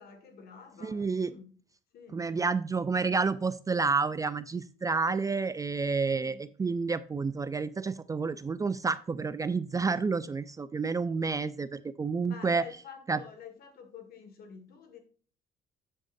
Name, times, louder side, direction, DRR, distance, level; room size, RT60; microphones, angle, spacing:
voice 1, 0.0-1.5 1.9-2.3 4.8-5.2 6.1-6.4 12.2-15.0, left 5 dB, 65° left, 6 dB, 1.9 m, -49 dB
voice 2, 0.8-1.3 2.1-12.6 13.1-13.2, right 4 dB, 20° right, 14 dB, 0.4 m, -30 dB
7.7 x 7.6 x 2.6 m, 0.42 s
cardioid pair, 110°, 17 cm